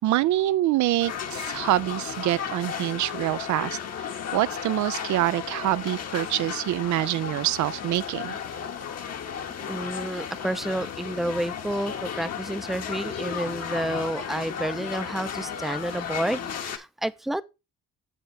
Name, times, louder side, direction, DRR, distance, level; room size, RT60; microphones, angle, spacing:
voice 1, 0.0-3.8 4.3-8.4, right 15 dB, 70° right, 0.5 m, -25 dB
sound 1, 1.0-16.8, left 7 dB, 55° left, 1.3 m, -34 dB
voice 2, 9.6-17.4, right 1 dB, ahead, 0.5 m, -30 dB
8.0 x 7.3 x 3.2 m
cardioid pair, 90°, 30 cm